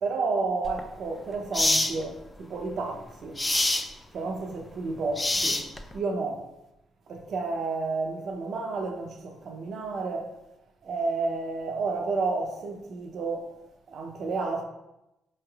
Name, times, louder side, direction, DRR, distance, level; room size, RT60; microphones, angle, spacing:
voice 1, 0.0-3.4 4.1-5.6 5.9-6.5 7.1-10.3 10.8-13.5 13.9-14.6, right 3 dB, 60° right, 0.6 m, -31 dB
sound 1, 0.7-0.8 1.5-1.9 3.4-3.9 5.2-5.9, left 2 dB, 15° left, 0.3 m, -25 dB
4.4 x 3.2 x 2.3 m
cardioid pair, 90°, 0 cm